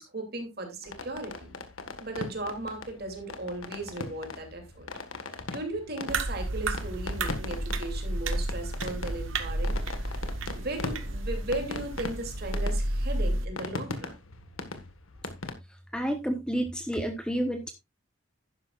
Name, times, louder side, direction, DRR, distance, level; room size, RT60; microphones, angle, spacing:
voice 1, 0.0-1.6 2.0-4.9 5.3-10.1 10.5-14.2, right 2 dB, 50° right, 4 dB, 2.9 m, -37 dB
sound 1, 0.8-15.5, left 3 dB, 90° left, 1.6 m, -40 dB
sound 2, 6.1-13.5, right 1 dB, 75° right, 1.2 m, -31 dB
voice 2, 15.9-17.7, right 1 dB, 5° left, 5 dB, 1.1 m, -30 dB
11.5 x 10.5 x 2.5 m, 0.21 s
head